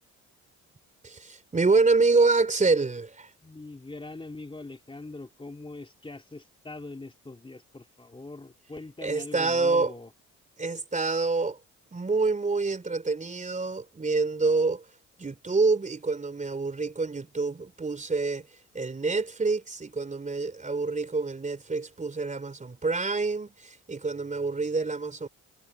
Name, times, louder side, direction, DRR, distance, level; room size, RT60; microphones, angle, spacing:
voice 1, 1.0-3.3 9.0-9.9 10.6-11.6 11.9-14.9 15.2-18.5 18.7-25.3, right 3 dB, 25° right, 3.8 m, -26 dB
voice 2, 3.4-10.1, left 2 dB, 15° left, 3.1 m, -42 dB
cardioid pair, 90°, 30 cm